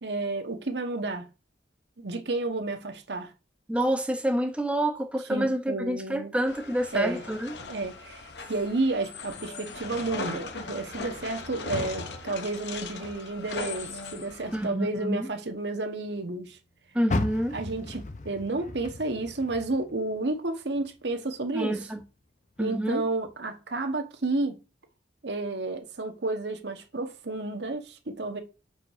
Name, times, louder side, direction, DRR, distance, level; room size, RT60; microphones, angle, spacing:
voice 1, 0.0-1.2 2.0-3.3 5.3-6.3 6.9-7.2 7.7-16.6 17.5-21.8 22.6-24.6 25.2-28.4, right 2 dB, 70° right, 1.1 m, -31 dB
voice 2, 3.7-7.6 14.5-15.3 16.9-17.6 21.5-22.0 22.6-23.1, right 1 dB, 5° right, 0.5 m, -28 dB
sound 1, 6.5-14.7, left 3 dB, 70° left, 1.1 m, -38 dB
Car, 17.0-20.3 20.7-22.1 22.6-22.7 23.3-23.4, left 2 dB, 40° left, 0.6 m, -35 dB
5.6 x 4.7 x 4.8 m
head